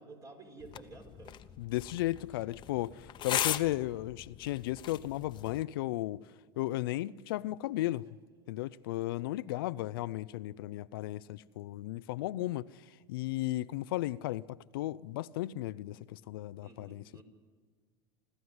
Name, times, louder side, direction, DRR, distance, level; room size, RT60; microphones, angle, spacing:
voice 1, 0.0-1.4 1.9-2.0 16.6-17.2, right 3 dB, 30° right, 4.8 m, -51 dB
sound 1, 0.6-5.6, left 12 dB, 40° left, 1.0 m, -39 dB
voice 2, 1.6-6.2 6.6-8.1 8.5-12.8 13.1-17.2, left 16 dB, 80° left, 0.6 m, -35 dB
26.0 x 14.5 x 9.7 m
supercardioid pair, 105°, 12 cm